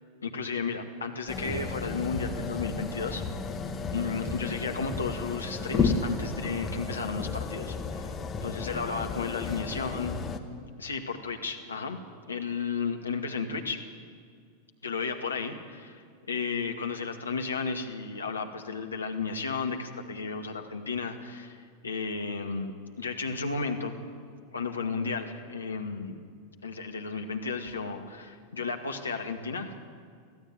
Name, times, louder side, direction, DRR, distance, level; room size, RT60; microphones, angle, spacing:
voice 1, 0.2-3.2 3.9-8.1 8.4-10.2 10.8-12.0 12.3-13.8 14.8-23.9 24.5-26.1 26.6-29.8, left 4 dB, 75° left, 4 dB, 2.1 m, -33 dB
sound 1, 1.3-10.4, left 4 dB, 20° left, 1.7 m, -33 dB
25.0 x 15.5 x 9.1 m, 2.1 s
figure-of-eight pair, 90°, 0 cm